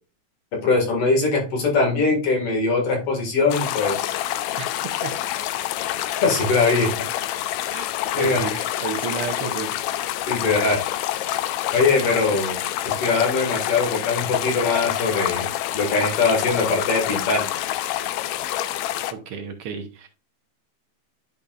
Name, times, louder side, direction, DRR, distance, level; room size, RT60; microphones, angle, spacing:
voice 1, 0.5-4.2 6.2-6.9 8.2-8.6 10.3-10.9 11.7-12.6 13.0-17.5, left 3 dB, 50° left, 1 dB, 2.8 m, -21 dB
sound 1, 3.5-19.1, left 13 dB, 80° left, 1.7 m, -27 dB
voice 2, 8.2-9.8 19.1-20.1, right 6 dB, 65° right, 5 dB, 1.5 m, -32 dB
11.0 x 5.3 x 2.4 m, 0.34 s
omnidirectional pair, 3.5 m